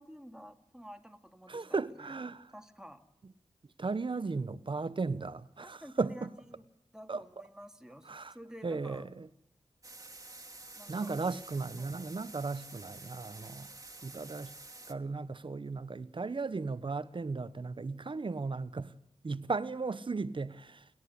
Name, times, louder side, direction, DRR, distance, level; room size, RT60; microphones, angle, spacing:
voice 1, 0.0-2.1 2.5-3.0 5.6-6.7 6.9-9.1 10.7-11.1 11.8-11.9, equal, 5° right, 2.7 m, -51 dB
voice 2, 1.5-2.5 3.8-6.3 7.1-7.2 8.1-8.3 8.6-9.3 10.9-13.7 14.0-14.5 14.9-18.9 19.2-20.9, right 4 dB, 50° right, 1.1 m, -36 dB
sound 1, 9.8-14.9, right 2 dB, 30° right, 2.4 m, -50 dB
29.0 x 11.0 x 8.3 m
cardioid pair, 50°, 11 cm